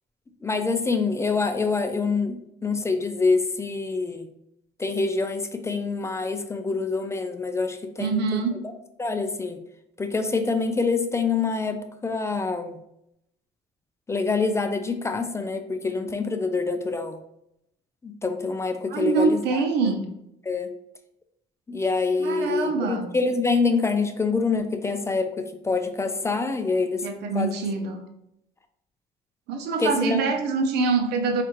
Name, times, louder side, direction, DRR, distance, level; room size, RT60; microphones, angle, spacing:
voice 1, 0.4-4.3 4.8-8.4 9.0-9.6 10.0-12.8 14.1-17.2 18.0-19.9 20.5-20.7 21.7-27.0 27.3-27.5 29.8-30.3, left 4 dB, 15° left, 7 dB, 0.3 m, -26 dB
voice 2, 8.0-8.6 18.9-20.1 22.2-23.1 27.0-28.0 29.5-31.4, right 4 dB, 80° right, 5 dB, 0.6 m, -25 dB
4.1 x 2.4 x 3.1 m, 0.79 s
cardioid pair, 110°, 17 cm